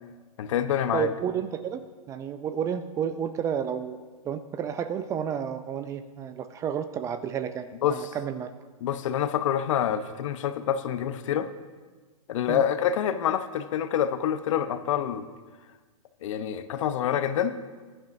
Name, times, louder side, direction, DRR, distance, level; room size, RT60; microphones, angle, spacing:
voice 1, 0.4-1.1 7.8-8.1 8.8-11.5 12.3-15.3 16.2-17.6, left 9 dB, 60° left, 10 dB, 1.0 m, -27 dB
voice 2, 0.9-1.8 2.1-4.0 4.2-8.5 12.5-12.6, right 8 dB, 15° right, 11 dB, 0.4 m, -31 dB
20.5 x 10.5 x 2.7 m, 1.4 s
hypercardioid pair, 135°, 19 cm